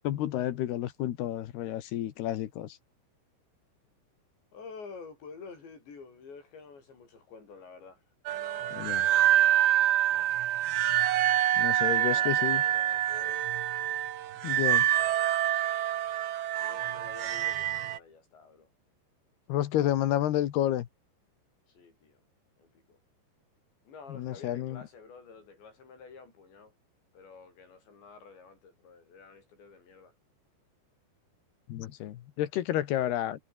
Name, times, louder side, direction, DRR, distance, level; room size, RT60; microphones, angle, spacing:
voice 1, 0.0-2.7 8.8-9.0 11.6-12.6 14.4-14.8 19.5-20.9 24.2-24.8 31.7-33.4, left 12 dB, 70° left, 3.3 m, -30 dB
voice 2, 4.5-9.5 10.1-10.5 11.8-13.6 16.6-18.7 21.7-22.2 22.6-23.0 23.9-26.7 27.1-30.1, left 5 dB, 85° left, 9.4 m, -50 dB
sound 1, 8.3-18.0, right 12 dB, 85° right, 3.9 m, -26 dB
omnidirectional pair, 5.0 m